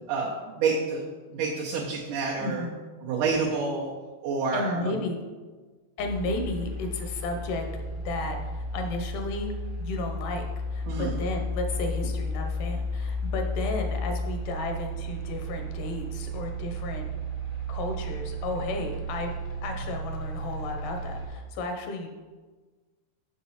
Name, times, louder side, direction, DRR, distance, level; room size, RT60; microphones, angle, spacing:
voice 1, 0.1-1.0 1.3-2.7 3.0-3.9 4.2-4.9 10.9-11.2, right 4 dB, 75° right, -5 dB, 2.3 m, -28 dB
voice 2, 2.4-2.8 4.5-5.2 6.0-8.4 8.7-9.5 9.8-17.1 17.7-19.4 19.6-22.1, left 2 dB, 85° left, 4 dB, 2.5 m, -33 dB
sound 1, 6.0-21.3, equal, 60° left, 0.8 m, -33 dB
6.7 x 5.9 x 4.1 m, 1.3 s
omnidirectional pair, 3.6 m